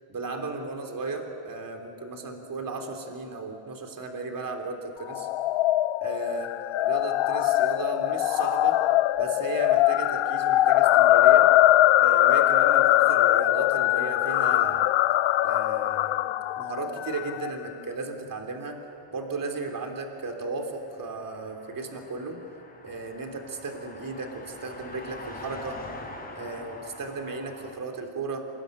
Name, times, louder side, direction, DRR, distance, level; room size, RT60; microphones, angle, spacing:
voice 1, 0.1-5.3 6.0-8.8 9.2-11.5 12.0-14.9 15.4-18.8 19.1-22.4 22.8-25.8 26.3-28.4, right 3 dB, 40° right, 4 dB, 3.4 m, -35 dB
sound 1, 5.1-17.5, left 15 dB, 70° left, 0.7 m, -22 dB
Car passing by, 17.6-27.8, left 2 dB, 20° left, 6.5 m, -45 dB
26.0 x 21.5 x 9.9 m, 3.0 s
cardioid pair, 105°, 48 cm